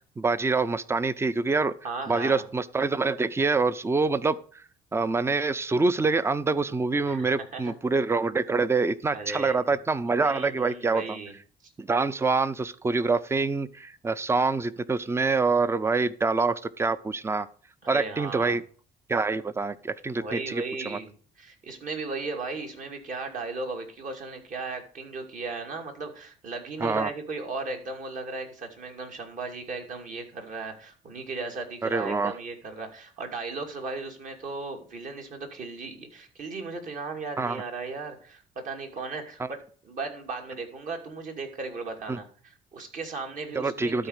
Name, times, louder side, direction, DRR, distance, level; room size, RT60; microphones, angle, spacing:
voice 1, 0.2-1.7 2.1-4.4 4.9-11.2 11.8-17.5 17.9-18.6 19.1-21.0 26.8-27.1 31.8-32.3 37.4-37.6 39.4-39.5 42.1-42.2 43.6-44.1, right 4 dB, 15° right, 17 dB, 0.5 m, -26 dB
voice 2, 1.8-2.4 7.0-7.7 9.1-9.7 10.2-11.3 11.6-11.7 17.8-18.6 20.1-44.1, right 3 dB, 50° right, 3 dB, 2.7 m, -36 dB
12.5 x 4.4 x 6.6 m, 0.43 s
cardioid pair, 110°, 17 cm